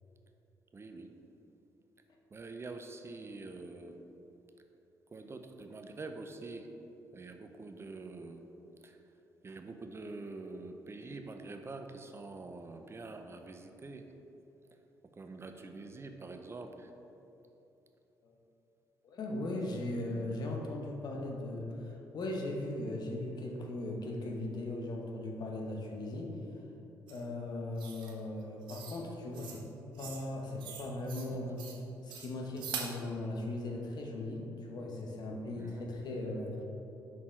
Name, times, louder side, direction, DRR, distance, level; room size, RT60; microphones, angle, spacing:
voice 1, 0.7-1.1 2.3-4.0 5.1-6.7 7.1-8.5 8.8-9.0 9.4-14.1 15.1-16.9 31.3-31.6 35.5-35.9, right 3 dB, 30° right, 6 dB, 0.5 m, -46 dB
voice 2, 19.0-26.3 27.1-29.7 30.0-31.6 32.0-36.6, left 2 dB, 60° left, 1 dB, 1.0 m, -38 dB
sound 1, 27.1-27.2 27.8-28.1 28.7-29.0 29.3-29.6 29.9-30.3 30.6-31.3 31.6-31.8 32.1-32.9, right 7 dB, 75° right, 0.7 m, -43 dB
5.8 x 4.2 x 4.4 m, 3.0 s
supercardioid pair, 60°, 8 cm